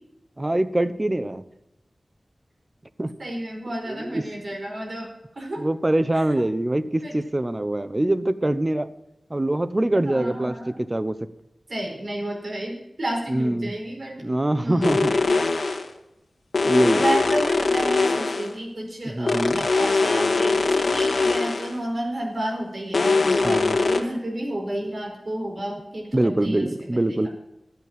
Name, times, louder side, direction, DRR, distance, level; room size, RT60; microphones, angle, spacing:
voice 1, 0.4-1.4 3.0-3.1 3.9-4.2 5.6-8.9 9.3-11.2 13.3-13.7 14.2-15.1 16.6-17.1 19.0-19.7 23.4-23.8 26.1-27.3, right 1 dB, 25° right, 13 dB, 0.7 m, -24 dB
voice 2, 3.2-5.1 5.3-5.7 6.1-6.2 7.0-7.1 9.9-10.8 11.7-14.2 14.6-15.2 16.9-27.3, right 1 dB, 55° right, 0 dB, 5.0 m, -31 dB
sound 1, 14.8-15.9 16.5-18.5 19.3-21.8 22.9-24.0, left 3 dB, 80° left, 1.7 m, -22 dB
12.5 x 8.5 x 7.5 m, 0.88 s
wide cardioid pair, 85°, 0 cm